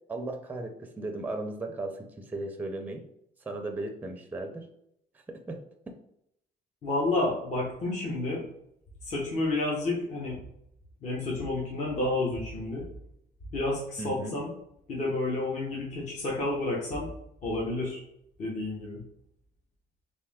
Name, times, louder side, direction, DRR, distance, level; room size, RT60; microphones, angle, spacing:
voice 1, 0.1-3.0 3.4-4.7 5.3-5.6 14.0-14.4, right 2 dB, 10° right, 4 dB, 0.5 m, -36 dB
voice 2, 6.8-8.4 9.0-10.4 11.0-12.9 13.5-14.5 14.9-17.1 17.4-18.0 18.4-19.0, left 2 dB, 45° left, -3 dB, 1.0 m, -30 dB
3.3 x 2.7 x 3.5 m, 0.76 s
cardioid pair, 110°, 17 cm